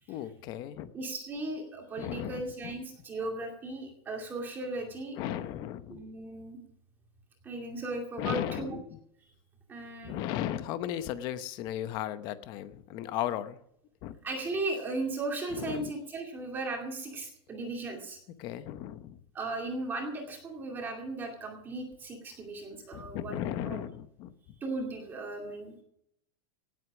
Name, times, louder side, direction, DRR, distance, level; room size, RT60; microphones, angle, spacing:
voice 1, 0.0-0.9 2.0-2.7 5.2-6.0 8.2-8.8 10.0-13.6 14.0-14.2 15.5-15.9 18.4-19.2 22.9-24.3, left 11 dB, 30° left, 13 dB, 0.8 m, -36 dB
voice 2, 0.9-5.2 5.9-6.6 7.4-8.8 9.7-10.1 14.2-18.2 19.3-23.8 24.6-25.8, right 2 dB, 15° right, 1 dB, 2.4 m, -36 dB
18.5 x 8.0 x 6.1 m, 0.72 s
supercardioid pair, 180°, 14 cm